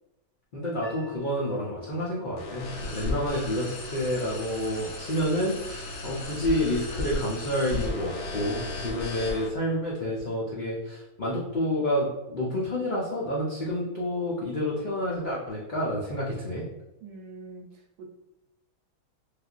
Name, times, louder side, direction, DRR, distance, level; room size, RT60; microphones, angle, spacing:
voice 1, 0.5-16.6, left 1 dB, 80° left, -6 dB, 0.4 m, -29 dB
sound 1, 0.8-7.0, left 6 dB, 5° left, 0.9 m, -47 dB
sound 2, 2.4-9.5, left 2 dB, 60° left, 0.8 m, -35 dB
voice 2, 17.0-18.1, right 3 dB, 85° right, 3 dB, 1.1 m, -44 dB
3.4 x 2.4 x 2.4 m, 0.97 s
omnidirectional pair, 1.7 m